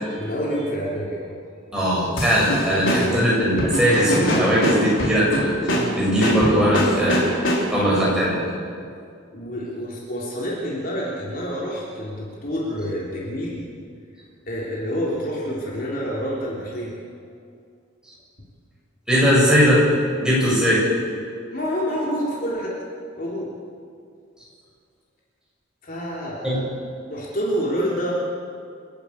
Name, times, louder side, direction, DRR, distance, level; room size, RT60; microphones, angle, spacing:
voice 1, 0.2-1.3 2.8-3.2 7.9-8.1 9.3-13.6 14.5-17.0 21.5-22.7 23.2-23.5 25.8-26.6 27.1-28.1, equal, 45° left, -4 dB, 3.5 m, -28 dB
voice 2, 1.7-7.2 7.7-8.4 19.1-19.8 20.2-20.8 26.4-26.6, equal, 5° right, -7 dB, 7.6 m, -19 dB
sound 1, 2.2-7.9, equal, 75° left, 4.7 m, -24 dB
30.0 x 11.5 x 8.7 m, 2.3 s
head